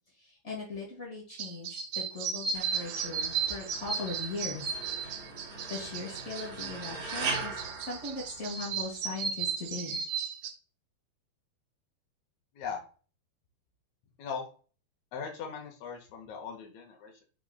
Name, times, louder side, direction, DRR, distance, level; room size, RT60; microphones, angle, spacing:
voice 1, 0.2-4.6 5.7-10.0, left 3 dB, 50° left, -5 dB, 0.8 m, -39 dB
sound 1, 1.3-10.5, right 6 dB, 80° right, 2.6 m, -35 dB
sound 2, 2.5-8.8, right 4 dB, 50° right, 2.3 m, -40 dB
voice 2, 15.1-17.2, left 6 dB, 75° left, 3 dB, 1.8 m, -39 dB
6.0 x 3.7 x 2.3 m, 0.38 s
omnidirectional pair, 4.2 m